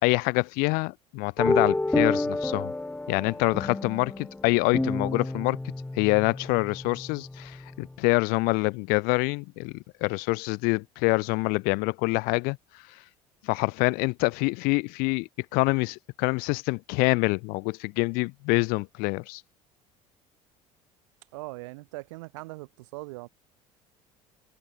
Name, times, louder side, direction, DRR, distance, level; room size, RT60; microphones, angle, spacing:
voice 1, 0.0-2.7 3.1-5.6 6.0-9.7 10.0-12.6 13.4-19.4, left 29 dB, 75° left, 1.0 m, -26 dB
sound 1, 1.4-7.9, left 2 dB, 10° left, 1.1 m, -30 dB
voice 2, 21.3-23.3, right 23 dB, 85° right, 3.2 m, -40 dB
supercardioid pair, 80°, 15 cm